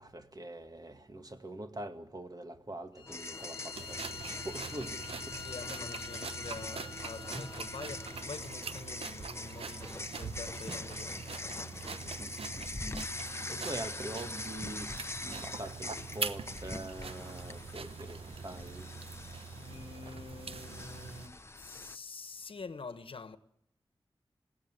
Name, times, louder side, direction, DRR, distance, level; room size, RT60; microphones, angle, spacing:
voice 1, 0.0-5.4 7.3-7.5 10.7-10.8 12.2-12.8 13.2-18.2 18.4-18.9, right 1 dB, 40° right, 2.1 m, -44 dB
Bowed string instrument, 2.9-8.3, left 7 dB, 55° left, 1.0 m, -47 dB
sound 1, 3.1-22.0, left 2 dB, 30° left, 0.9 m, -43 dB
sound 2, 3.7-21.3, right 5 dB, 85° right, 1.0 m, -43 dB
voice 2, 5.3-11.3 19.5-23.4, left 4 dB, 70° left, 1.2 m, -46 dB
21.0 x 16.5 x 9.7 m
cardioid pair, 55°, 9 cm